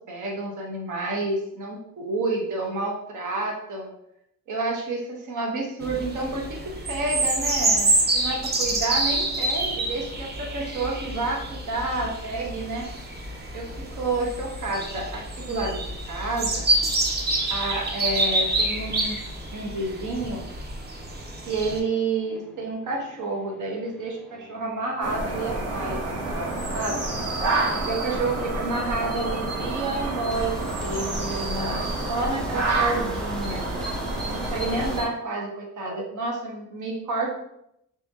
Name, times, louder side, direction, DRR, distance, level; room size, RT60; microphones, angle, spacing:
voice 1, 0.1-3.9 4.5-12.9 13.5-16.7 17.5-19.2 19.5-20.4 21.5-26.0 26.3-26.5 26.7-27.0 27.8-30.5 30.8-31.8 32.1-33.7 34.2-37.3, right 2 dB, 75° right, -1 dB, 1.2 m, -29 dB
sound 1, 5.8-21.8, right 2 dB, 35° right, 0.8 m, -27 dB
sound 2, 20.9-29.4 30.3-35.0, left 1 dB, ahead, 0.4 m, -42 dB
sound 3, 25.0-35.1, right 2 dB, 55° right, 1.3 m, -28 dB
3.3 x 2.8 x 3.6 m, 0.77 s
cardioid pair, 90°, 30 cm